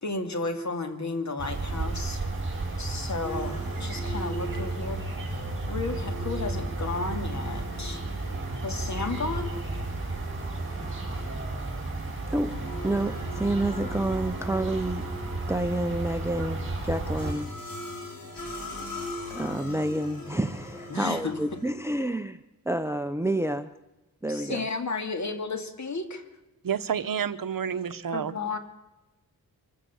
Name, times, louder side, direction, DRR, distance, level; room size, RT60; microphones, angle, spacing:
voice 1, 0.0-2.2 2.8-5.4 5.7-8.0 8.6-9.6 20.9-21.4 24.3-26.2 28.1-28.6, left 3 dB, 50° left, 6 dB, 2.4 m, -33 dB
sound 1, 1.4-17.3, right 2 dB, 35° right, 7.6 m, -33 dB
sound 2, 3.2-21.7, left 1 dB, 65° left, 7.1 m, -41 dB
voice 2, 12.8-15.1 15.5-17.5 19.3-22.4 22.7-23.7 24.2-24.7, right 1 dB, 5° right, 11 dB, 0.6 m, -29 dB
voice 3, 26.6-28.3, right 7 dB, 60° right, 11 dB, 1.0 m, -29 dB
24.5 x 15.0 x 7.2 m, 1.0 s
wide cardioid pair, 110°, 37 cm